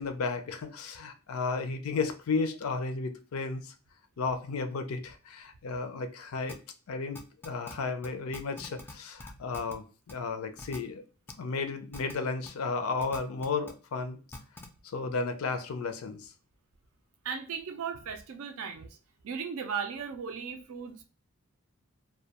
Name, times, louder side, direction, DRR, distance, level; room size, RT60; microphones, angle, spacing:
voice 1, 0.0-3.7 4.2-6.6 6.9-7.2 7.4-11.0 11.4-14.2 14.8-16.3, left 4 dB, 75° left, 8 dB, 0.4 m, -33 dB
sound 1, 6.5-6.6 7.1-7.7 8.0-8.1 8.3-8.9 9.2-9.7 10.1-10.2 10.6-10.8 11.3-11.4 11.9-12.1 12.4-12.5 13.0-13.7 14.3-14.7, left 2 dB, 10° left, 0.3 m, -43 dB
voice 2, 17.2-18.9 19.2-21.0, right 6 dB, 70° right, 7 dB, 0.4 m, -36 dB
2.2 x 2.2 x 2.7 m, 0.35 s
head